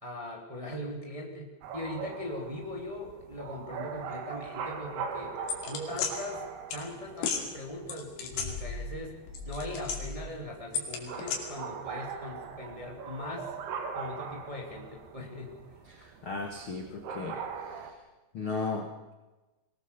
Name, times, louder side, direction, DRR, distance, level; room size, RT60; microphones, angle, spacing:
voice 1, 0.0-6.4 6.7-13.5 13.9-15.6, left 1 dB, 10° right, 0 dB, 1.7 m, -40 dB
sound 1, 1.6-17.9, right 6 dB, 65° right, 3.5 m, -41 dB
sound 2, 5.5-6.1 6.7-6.8 7.2-7.4 7.9-9.0 9.3-10.3 10.7-11.4, left 5 dB, 80° left, 4.9 m, -33 dB
voice 2, 15.9-17.4 17.7-17.8 18.3-19.1, left 4 dB, 55° left, 3 dB, 1.4 m, -36 dB
23.0 x 18.5 x 6.9 m, 1.1 s
omnidirectional pair, 5.2 m